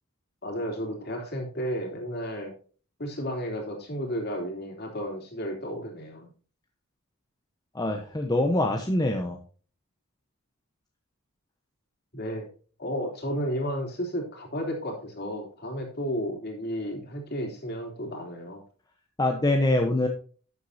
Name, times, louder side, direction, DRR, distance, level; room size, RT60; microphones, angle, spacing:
voice 1, 0.4-2.5 3.0-6.3 12.1-12.5 12.8-18.6, equal, 45° left, 1 dB, 3.3 m, -33 dB
voice 2, 7.7-9.4 19.2-20.1, left 1 dB, 15° left, 2 dB, 0.9 m, -24 dB
12.0 x 8.2 x 2.8 m, 0.40 s
head